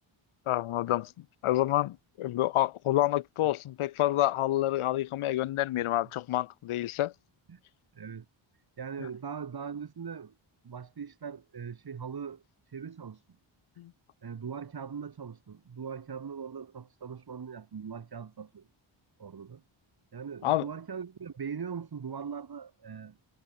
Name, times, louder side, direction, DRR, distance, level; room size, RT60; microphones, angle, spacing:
voice 1, 0.5-1.1 1.4-7.1 13.8-13.9 20.4-20.6, left 14 dB, 90° left, 0.9 m, -28 dB
voice 2, 7.9-8.2 8.8-10.3 10.6-13.2 14.2-18.7 19.2-19.6 20.1-23.2, right 6 dB, 50° right, 4.7 m, -40 dB
wide cardioid pair, 115°, 48 cm